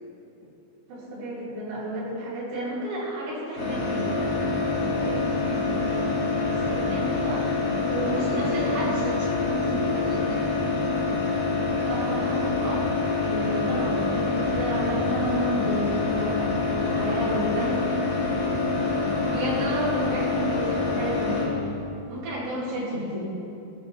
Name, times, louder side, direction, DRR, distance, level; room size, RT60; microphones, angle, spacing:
voice 1, 0.9-4.6 4.9-5.9 6.5-7.4 8.0-8.9 11.9-12.9 13.2-17.8 18.3-18.4 19.3-21.5 22.1-23.3, equal, 75° right, -8 dB, 6.1 m, -32 dB
sound 1, 3.6-21.5, left 3 dB, 70° left, 6.2 m, -26 dB
voice 2, 7.8-10.4 23.1-23.2, right 1 dB, 25° right, -11 dB, 3.2 m, -33 dB
18.5 x 15.0 x 3.2 m, 2.8 s
omnidirectional pair, 5.1 m